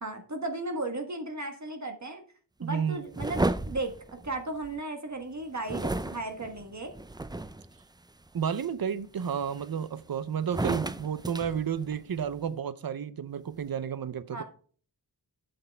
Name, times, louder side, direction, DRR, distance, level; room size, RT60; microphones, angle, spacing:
voice 1, 0.0-2.2 2.6-3.9 4.2-6.9 14.3-14.4, right 2 dB, 45° right, 1.4 m, -35 dB
voice 2, 2.6-3.0 8.3-14.4, right 7 dB, 60° right, 0.7 m, -31 dB
sound 1, 3.1-4.8 5.7-7.7 8.3-8.7 9.2-10.0 10.4-12.3, right 2 dB, 10° right, 0.4 m, -33 dB
8.0 x 7.9 x 3.4 m
wide cardioid pair, 100°, 40 cm